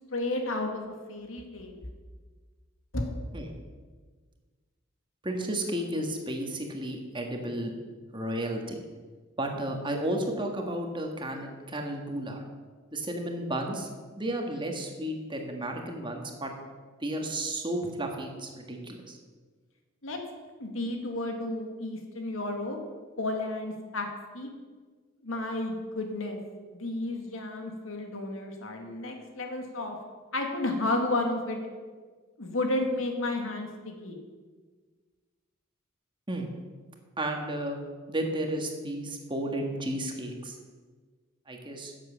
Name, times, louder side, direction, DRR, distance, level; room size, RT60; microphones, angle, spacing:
voice 1, 0.1-0.8 1.1-1.9 2.9-3.1 20.0-20.2 20.6-22.8 23.2-24.1 24.3-24.5 25.2-26.4 26.7-30.0 30.3-31.6 32.4-34.2, left 2 dB, 85° left, 3 dB, 2.0 m, -32 dB
voice 2, 5.2-7.8 8.1-8.7 9.4-12.4 12.9-13.9 14.2-16.5 17.0-19.2 36.3-36.5 37.2-37.8 38.1-40.5 41.5-41.9, right 1 dB, 25° right, 2 dB, 1.6 m, -33 dB
11.0 x 7.6 x 7.3 m, 1.5 s
head